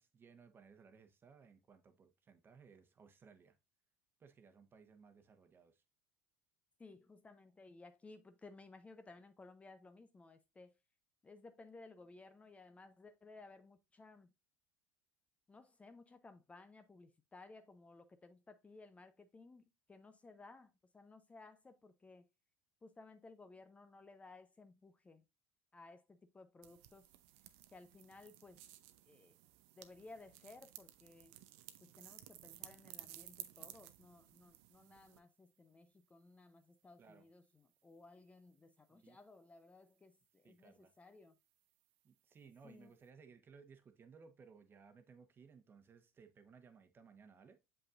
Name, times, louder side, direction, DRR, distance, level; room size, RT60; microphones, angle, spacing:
voice 1, 0.0-3.6 4.2-5.8 37.0-37.3 38.9-39.2 40.4-40.9 42.0-47.6, right 5 dB, 30° right, 1.1 m, -61 dB
voice 2, 6.8-10.7 11.2-14.3 15.5-22.3 22.8-25.2 25.7-27.1 27.7-28.6 29.1-29.4 29.8-31.3 31.8-41.3 42.6-42.9, left 3 dB, 20° left, 0.6 m, -58 dB
sound 1, 26.6-35.2, right 14 dB, 75° right, 0.6 m, -56 dB
6.9 x 5.4 x 2.5 m
hypercardioid pair, 85°, 7 cm